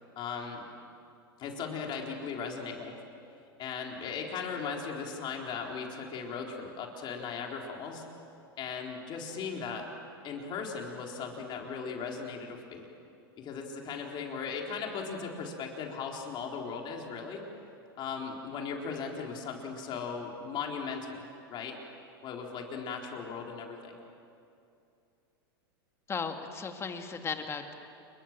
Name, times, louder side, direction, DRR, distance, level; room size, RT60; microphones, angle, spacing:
voice 1, 0.2-0.6 1.4-2.9 3.6-8.0 8.6-9.8 10.2-12.9 13.4-17.4 18.0-21.8 22.2-24.0, left 5 dB, 40° left, 1 dB, 4.3 m, -38 dB
voice 2, 26.1-27.7, left 5 dB, 20° left, 5 dB, 2.4 m, -36 dB
28.5 x 23.0 x 7.6 m, 2.6 s
hypercardioid pair, 115°, 13 cm